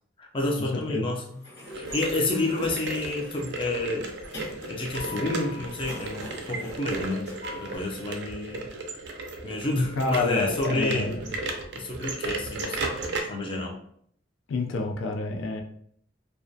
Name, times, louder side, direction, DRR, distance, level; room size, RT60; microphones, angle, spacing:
voice 1, 0.2-1.2 1.7-4.1 4.7-8.7 9.4-11.1 11.7-12.8 13.1-13.8, left 2 dB, 30° left, -1 dB, 0.4 m, -29 dB
Sliding door, 1.3-7.8, left 2 dB, 60° left, 0.9 m, -43 dB
sound 1, 1.7-13.2, right 3 dB, 65° right, 0.4 m, -35 dB
voice 2, 10.0-11.4 14.5-15.6, left 3 dB, 90° left, 2 dB, 0.4 m, -28 dB
2.3 x 2.1 x 2.6 m, 0.65 s
head